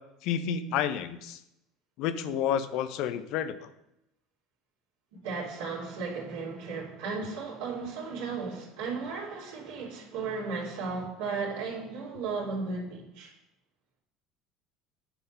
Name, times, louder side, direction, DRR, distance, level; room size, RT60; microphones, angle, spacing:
voice 1, 0.2-1.4 2.0-3.7, left 9 dB, 55° left, 11 dB, 0.6 m, -30 dB
voice 2, 5.2-13.3, right 4 dB, 65° right, -3 dB, 3.1 m, -35 dB
9.9 x 5.6 x 5.6 m, 0.86 s
figure-of-eight pair, 65°, 0 cm